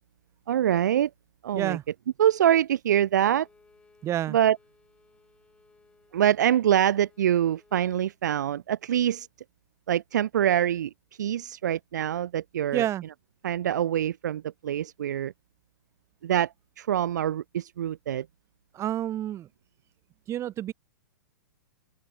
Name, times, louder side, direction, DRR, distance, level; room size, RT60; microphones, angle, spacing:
voice 1, 0.5-1.1 1.4-1.8 2.2-3.5 4.3-4.6 6.1-9.3 9.9-10.9 11.2-12.9 13.4-15.3 16.2-18.3, right 10 dB, 70° right, 0.5 m, -25 dB
voice 2, 1.5-1.8 4.0-4.4 12.7-13.0 18.7-19.5 20.3-20.7, right 12 dB, 30° right, 2.2 m, -29 dB
Bowed string instrument, 3.2-8.2, left 4 dB, 10° left, 6.4 m, -61 dB
open air
hypercardioid pair, 110°, 10 cm